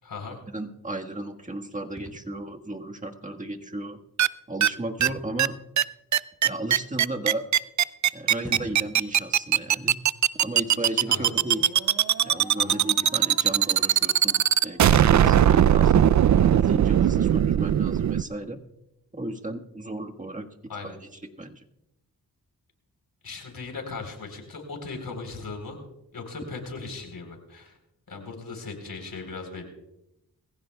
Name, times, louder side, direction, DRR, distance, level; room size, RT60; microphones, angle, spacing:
voice 1, 0.0-0.4 11.1-11.3 12.6-12.8 20.7-20.9 23.2-25.8 26.1-27.8 28.1-29.6, left 4 dB, 70° left, 4 dB, 3.9 m, -38 dB
voice 2, 0.5-4.0 4.5-5.6 6.4-7.4 8.1-10.0 10.4-11.7 12.2-18.6 19.1-20.5 20.8-21.1 21.4-21.6, right 1 dB, 20° right, 3 dB, 1.5 m, -34 dB
sound 1, 2.0-2.3 5.0-5.5 6.5-6.6 7.9-8.0 8.3-9.0, equal, ahead, 4.7 m, -42 dB
sound 2, 4.2-4.3 4.6-4.7 5.0-5.1 5.4-5.5 5.8-5.9 6.1-18.2, right 10 dB, 50° right, 0.4 m, -19 dB
sound 3, 10.6-17.1, right 4 dB, 90° right, 1.6 m, -46 dB
21.5 x 15.5 x 2.3 m, 0.87 s
cardioid pair, 60°, 37 cm